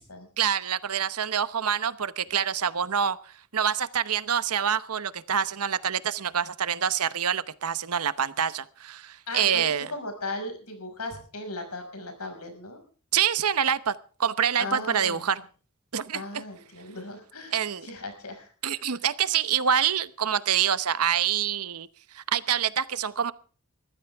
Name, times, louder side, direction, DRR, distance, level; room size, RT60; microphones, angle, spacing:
voice 1, 0.4-3.2 3.5-9.9 13.1-13.9 14.2-15.4 15.9-16.2 17.5-17.9 18.6-21.9 22.1-23.3, right 8 dB, 85° right, 15 dB, 0.9 m, -26 dB
voice 2, 9.3-12.8 14.6-15.3 16.1-18.5 18.8-18.9, left 2 dB, 80° left, 6 dB, 5.8 m, -37 dB
22.0 x 14.5 x 3.5 m, 0.39 s
head